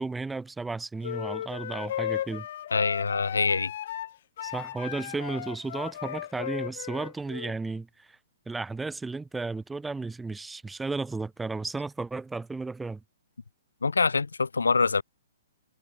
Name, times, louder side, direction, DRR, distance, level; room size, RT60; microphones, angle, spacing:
voice 1, 0.0-2.5 4.4-8.2 8.5-13.0, right 3 dB, 5° right, 2.8 m, -34 dB
sound 1, 1.0-7.5, left 11 dB, 55° left, 1.3 m, -35 dB
voice 2, 2.7-3.7 13.8-15.0, left 4 dB, 85° left, 0.6 m, -25 dB
hypercardioid pair, 125°, 0 cm